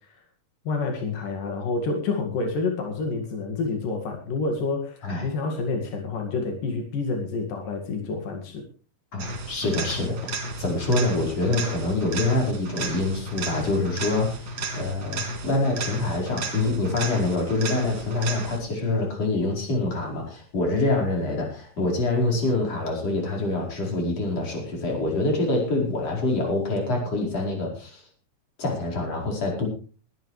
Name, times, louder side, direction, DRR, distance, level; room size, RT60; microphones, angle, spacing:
voice 1, 0.7-8.6, left 3 dB, 90° left, 3 dB, 3.8 m, -28 dB
voice 2, 9.1-28.0 28.6-29.7, left 2 dB, 50° left, 0 dB, 5.9 m, -26 dB
sound 1, 9.2-18.8 26.8-26.9, right 3 dB, 55° right, 4.1 m, -33 dB
21.0 x 12.5 x 3.3 m, 0.38 s
omnidirectional pair, 3.7 m